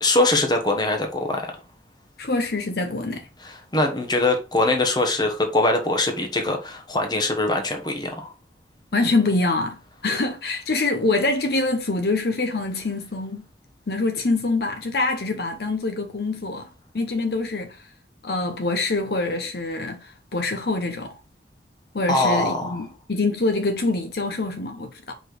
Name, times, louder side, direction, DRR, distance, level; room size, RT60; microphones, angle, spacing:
voice 1, 0.0-1.5 3.4-8.3 22.1-22.8, left 2 dB, 25° left, 1.1 m, -22 dB
voice 2, 2.2-3.3 8.9-13.5 13.9-16.7 16.9-17.8 18.2-21.1 21.9-25.1, left 3 dB, 60° left, 0.8 m, -25 dB
4.9 x 4.4 x 4.6 m
head